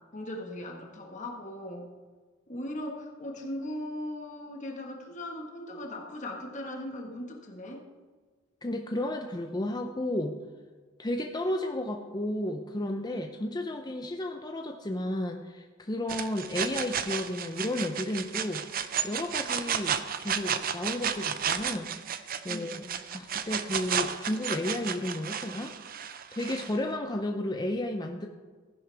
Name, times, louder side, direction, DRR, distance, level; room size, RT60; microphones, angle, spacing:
voice 1, 0.1-1.9 2.5-7.8 22.5-22.9, left 1 dB, 35° left, 1 dB, 1.5 m, -38 dB
voice 2, 8.6-10.4 11.0-18.6 19.0-22.7 23.1-25.7 26.3-28.3, left 1 dB, 20° left, 4 dB, 0.6 m, -33 dB
sound 1, 16.1-26.8, right 8 dB, 45° right, 0.6 m, -32 dB
15.0 x 10.5 x 3.4 m, 1.4 s
head